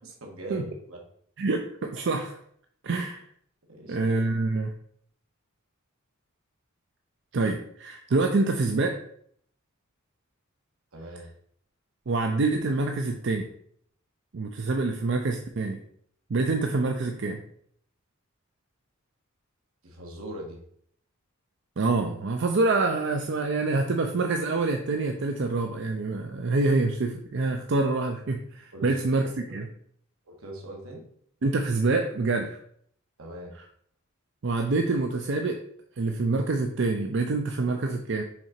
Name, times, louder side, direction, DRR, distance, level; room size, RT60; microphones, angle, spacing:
voice 1, 0.0-1.0 3.7-4.2 10.9-11.3 19.8-20.6 28.7-28.9 29.2-29.6 30.3-31.0 33.2-33.5, right 1 dB, 80° right, 1 dB, 1.5 m, -41 dB
voice 2, 1.4-2.4 2.8-3.2 3.9-4.7 7.3-9.0 12.1-13.5 14.3-15.8 16.3-17.4 21.8-29.7 31.4-32.6 34.4-35.6 36.0-38.2, right 3 dB, 55° right, 4 dB, 0.5 m, -26 dB
5.9 x 3.8 x 4.3 m, 0.65 s
head